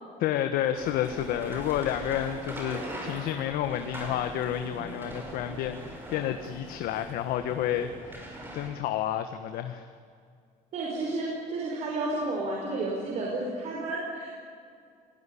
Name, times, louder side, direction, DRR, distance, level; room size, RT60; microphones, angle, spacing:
voice 1, 0.2-8.3 8.5-9.9, left 11 dB, 90° left, 8 dB, 1.4 m, -30 dB
sound 1, 0.7-8.7, right 1 dB, 15° right, 6.0 m, -41 dB
voice 2, 10.7-14.3, right 2 dB, 50° right, -2 dB, 5.1 m, -31 dB
27.0 x 19.0 x 10.0 m, 2.3 s
cardioid pair, 160°, 15 cm